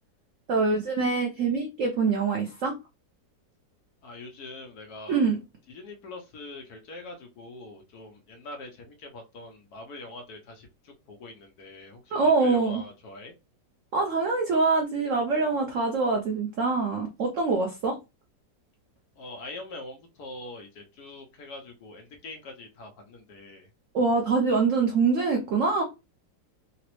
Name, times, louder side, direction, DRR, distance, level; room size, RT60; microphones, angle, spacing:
voice 1, 0.5-2.8 5.1-5.4 12.1-12.8 13.9-18.0 23.9-25.8, right 4 dB, 75° right, 2 dB, 0.7 m, -24 dB
voice 2, 4.0-5.2 5.7-13.3 19.2-23.7, left 2 dB, 65° left, 3 dB, 1.1 m, -43 dB
3.9 x 2.0 x 3.0 m, 0.26 s
omnidirectional pair, 2.0 m